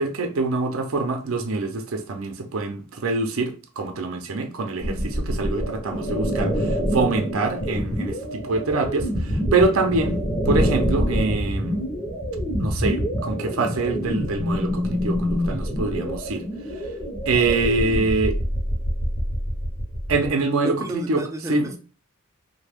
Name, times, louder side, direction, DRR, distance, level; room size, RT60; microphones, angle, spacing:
voice 1, 0.0-10.2 10.5-11.8 12.6-16.4 17.3-18.4 20.1-21.2 21.5-21.7, right 3 dB, 65° right, 0.6 m, -25 dB
sound 1, 4.8-20.3, equal, 30° left, 0.7 m, -26 dB
voice 2, 20.4-21.8, right 1 dB, 15° right, 0.3 m, -32 dB
3.3 x 2.1 x 3.4 m
head